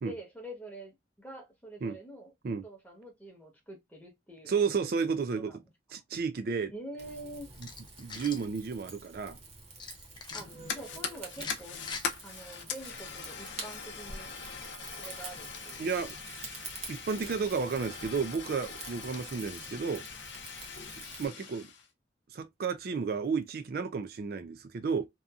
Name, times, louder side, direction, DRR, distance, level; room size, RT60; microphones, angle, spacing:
voice 1, 0.0-2.3 2.6-4.6 5.3-5.6 6.7-7.5 10.3-14.3 15.0-16.0 21.2-21.4, right 1 dB, 10° left, 0.9 m, -46 dB
voice 2, 4.5-5.5 5.9-6.7 8.0-9.4 15.8-16.5 16.9-20.0 21.2-21.7 22.3-25.1, right 5 dB, 55° right, 0.3 m, -32 dB
Rain / Fire, 7.0-21.3, right 3 dB, 40° right, 0.9 m, -48 dB
sound 1, 7.5-8.5 9.8-10.4 11.3-12.0, left 4 dB, 25° left, 0.4 m, -42 dB
Fire, 10.3-21.9, left 6 dB, 85° left, 0.6 m, -42 dB
2.7 x 2.5 x 2.3 m
head